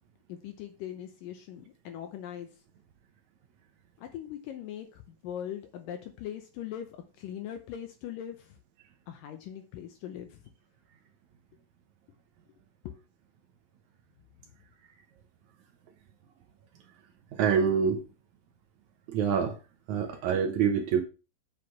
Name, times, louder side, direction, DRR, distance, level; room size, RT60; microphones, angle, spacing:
voice 1, 0.3-2.5 4.0-6.9 7.2-8.6 9.1-10.4 12.9-13.0, left 10 dB, 80° left, 2.4 m, -40 dB
voice 2, 17.3-18.0 19.1-19.6 19.9-21.0, right 7 dB, 70° right, 2.0 m, -26 dB
7.9 x 5.0 x 5.9 m
omnidirectional pair, 4.1 m